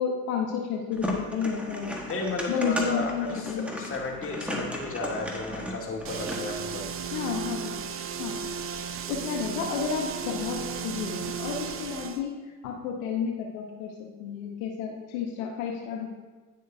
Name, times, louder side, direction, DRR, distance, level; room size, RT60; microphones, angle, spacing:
voice 1, 0.0-2.0 2.5-3.9 7.1-7.8 8.2-8.4 9.1-12.4 12.6-16.1, left 6 dB, 75° left, 1 dB, 1.0 m, -31 dB
sound 1, 0.9-6.6, equal, 5° right, 1.4 m, -35 dB
voice 2, 2.1-7.2, left 2 dB, 30° left, -1 dB, 1.8 m, -34 dB
sound 2, 6.0-12.2, right 6 dB, 30° right, 0.6 m, -35 dB
9.7 x 6.5 x 2.7 m, 1.3 s
hypercardioid pair, 80°, 42 cm